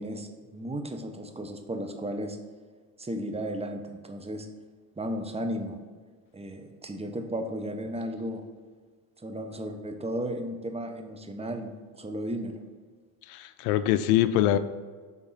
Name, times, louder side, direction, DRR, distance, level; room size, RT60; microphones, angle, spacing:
voice 1, 0.0-2.4 3.0-4.5 5.0-5.8 6.3-8.4 9.2-12.6, right 1 dB, 15° right, 5 dB, 0.8 m, -34 dB
voice 2, 13.3-14.6, left 12 dB, 75° left, 12 dB, 0.6 m, -23 dB
6.1 x 3.7 x 5.6 m, 1.5 s
hypercardioid pair, 75°, 45 cm